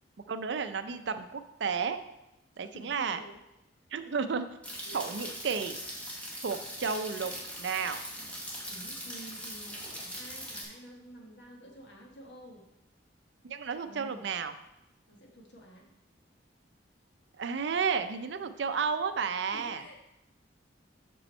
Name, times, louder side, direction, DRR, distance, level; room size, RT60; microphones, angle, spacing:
voice 1, 0.3-2.0 2.6-3.2 3.9-4.5 4.9-5.8 6.4-7.3 7.6-8.0 13.4-14.5 17.4-19.8, right 5 dB, 65° right, 10 dB, 0.5 m, -32 dB
voice 2, 2.7-3.4 4.9-5.0 8.6-12.6 13.8-14.2 15.1-15.9 19.5-20.0, equal, 65° left, 1 dB, 1.4 m, -50 dB
sound 1, 4.6-10.6, equal, 5° left, 1.1 m, -41 dB
6.2 x 5.4 x 4.3 m, 0.90 s
head